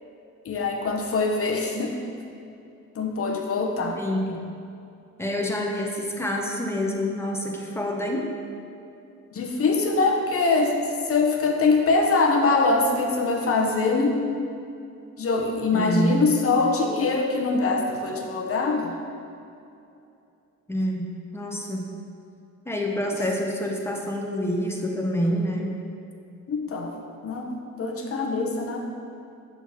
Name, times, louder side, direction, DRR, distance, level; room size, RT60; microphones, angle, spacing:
voice 1, 0.4-1.9 2.9-4.0 9.3-10.8 11.1-14.2 15.2-18.9 26.5-26.9 27.2-28.8, left 3 dB, 50° left, 2 dB, 1.0 m, -23 dB
voice 2, 3.9-4.4 5.2-8.3 15.7-16.1 20.7-21.8 22.7-25.7, equal, 10° left, 0 dB, 1.0 m, -27 dB
6.9 x 4.0 x 6.0 m, 2.7 s
cardioid pair, 90°, 30 cm